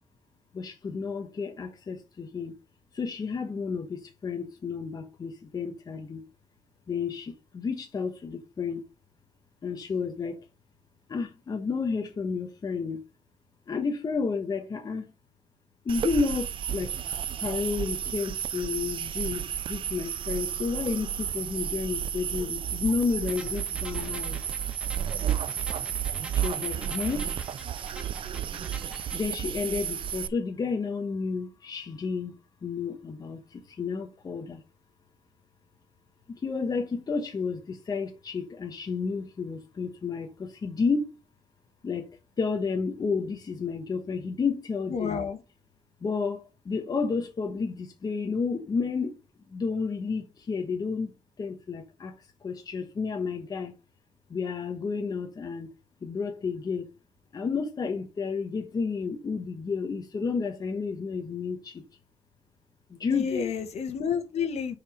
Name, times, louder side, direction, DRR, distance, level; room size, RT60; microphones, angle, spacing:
voice 1, 0.5-2.5 2.9-6.2 6.9-8.8 9.6-10.4 11.1-13.0 13.7-15.1 15.8-16.9 17.4-24.4 26.3-27.3 29.1-32.3 32.6-34.6 36.4-41.1 41.8-42.1 42.4-45.2 46.0-49.1 49.5-52.1 52.4-53.7 54.3-55.7 56.0-56.9 57.3-61.8 62.9-63.5, left 5 dB, 35° left, 1.2 m, -31 dB
sound 1, 15.9-30.3, right 9 dB, 45° right, 0.4 m, -32 dB
sound 2, 23.3-29.3, right 1 dB, 10° right, 1.5 m, -46 dB
voice 2, 44.9-45.4 63.1-64.8, left 6 dB, 65° left, 1.6 m, -30 dB
6.4 x 5.0 x 5.2 m
cardioid pair, 150°, 12 cm